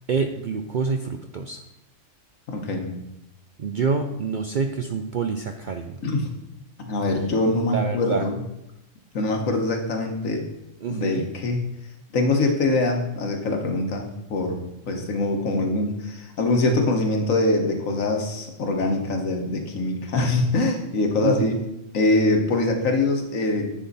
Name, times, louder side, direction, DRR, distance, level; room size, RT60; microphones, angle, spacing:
voice 1, 0.1-1.6 3.6-6.0 7.7-8.2 10.8-11.3 21.2-21.6, right 5 dB, 60° right, 5 dB, 0.5 m, -27 dB
voice 2, 2.5-3.0 6.0-6.3 6.8-8.3 9.1-10.5 10.9-11.6 12.1-21.6 21.9-23.7, left 2 dB, 75° left, 3 dB, 1.6 m, -23 dB
10.0 x 5.7 x 4.1 m, 0.88 s
omnidirectional pair, 1.4 m